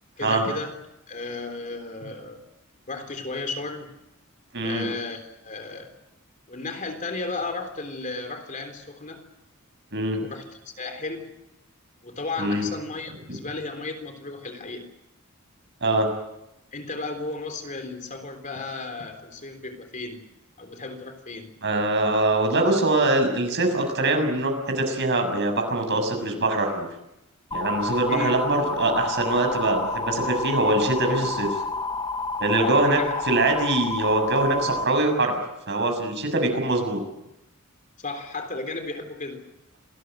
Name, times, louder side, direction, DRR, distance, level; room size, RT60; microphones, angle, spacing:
voice 1, 0.2-0.8 1.1-2.4 2.9-3.9 4.6-5.9 6.5-9.2 10.2-11.3 12.0-14.9 16.7-20.2 20.6-21.5 28.1-28.3 32.6-33.1 38.0-39.4, left 3 dB, 35° left, 6 dB, 3.7 m, -34 dB
voice 2, 4.5-4.9 9.9-10.2 12.4-12.6 13.3-13.4 15.8-16.1 21.6-26.9 27.5-31.6 32.4-33.0 33.3-35.4 35.7-37.0, right 2 dB, 55° right, 5 dB, 6.6 m, -23 dB
sound 1, 27.5-34.8, left 3 dB, 20° left, 0.8 m, -30 dB
28.0 x 19.5 x 7.9 m, 0.90 s
head